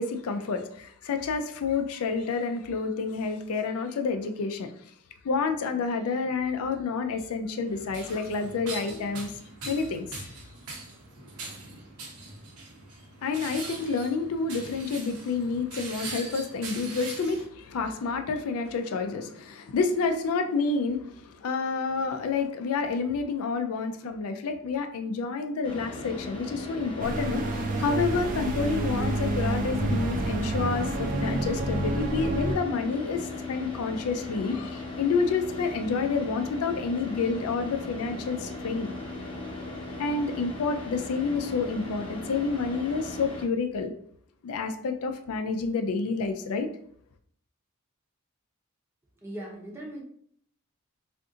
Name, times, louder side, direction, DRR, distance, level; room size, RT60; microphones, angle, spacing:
voice 1, 0.0-4.7 5.2-9.3 9.7-10.3 13.2-38.9 40.0-43.9 44.4-46.7, left 4 dB, 75° left, 7 dB, 0.4 m, -29 dB
sound 1, 7.7-17.4, right 3 dB, 85° right, 0.9 m, -42 dB
Car / Idling, 25.6-43.4, left 2 dB, 25° left, 0.8 m, -37 dB
sound 2, 27.0-32.6, right 2 dB, 35° right, 0.3 m, -29 dB
voice 2, 49.2-50.0, right 1 dB, 10° right, -2 dB, 0.7 m, -39 dB
2.5 x 2.4 x 3.7 m, 0.63 s
head